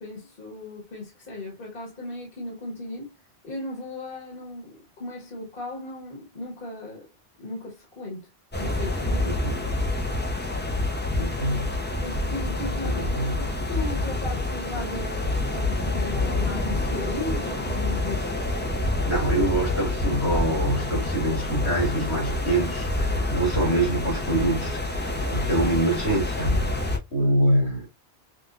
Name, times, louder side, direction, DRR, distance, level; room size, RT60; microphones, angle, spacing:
voice 1, 0.0-3.1 3.4-7.1 7.4-8.3 8.6-9.3 12.0-13.0 13.4-18.3 27.2-27.3, left 2 dB, 55° left, 1.7 m, -36 dB
sound 1, 8.5-27.0, left 2 dB, 10° left, 0.7 m, -27 dB
voice 2, 9.2-9.7 11.2-11.8 12.8-13.4 18.7-26.8 27.1-27.9, right 1 dB, 80° left, 2.8 m, -25 dB
6.0 x 2.5 x 2.4 m
omnidirectional pair, 1.1 m